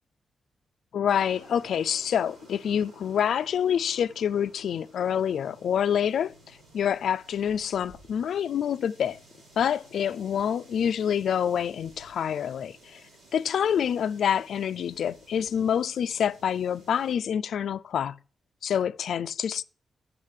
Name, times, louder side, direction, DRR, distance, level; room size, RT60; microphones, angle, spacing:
voice 1, 0.9-6.3 6.7-9.2 9.6-13.0 13.3-18.2 18.6-19.6, left 8 dB, 80° left, 0.4 m, -27 dB
sound 1, 1.1-17.2, right 2 dB, 85° right, 4.4 m, -55 dB
6.7 x 6.6 x 7.3 m
wide cardioid pair, 130°, 0 cm